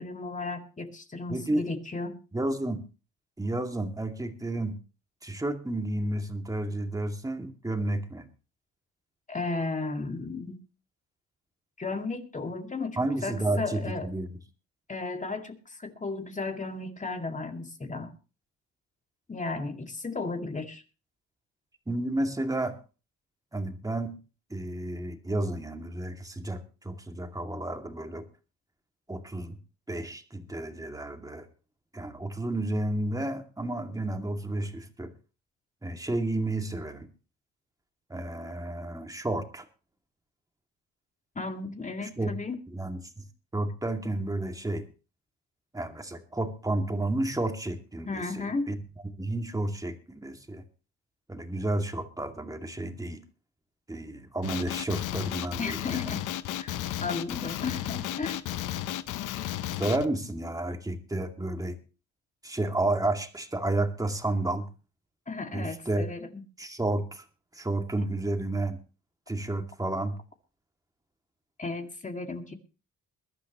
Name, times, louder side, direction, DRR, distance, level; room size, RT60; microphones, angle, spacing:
voice 1, 0.0-2.2 9.3-10.6 11.8-14.1 14.9-18.1 19.3-20.8 41.4-42.6 48.1-48.7 55.6-56.2 56.6-58.4 65.3-66.4 71.6-72.5, left 3 dB, 25° left, 5 dB, 2.2 m, -34 dB
voice 2, 1.3-1.6 2.3-2.8 3.4-4.8 5.2-8.3 13.0-14.3 21.9-22.8 23.5-24.1 24.5-28.2 29.1-29.6 29.9-31.5 31.9-35.1 35.8-37.1 38.1-39.6 42.0-42.3 42.7-43.3 43.5-44.8 45.7-48.8 49.2-50.6 51.3-53.2 53.9-56.1 59.8-61.8 62.4-64.7 65.5-66.1 66.6-67.2 67.5-68.8 69.3-70.2, right 2 dB, 10° right, 5 dB, 2.4 m, -31 dB
Male speech man speaking, 54.4-60.1, left 12 dB, 90° left, 1.0 m, -33 dB
22.0 x 12.0 x 3.0 m, 0.33 s
cardioid pair, 90°, 30 cm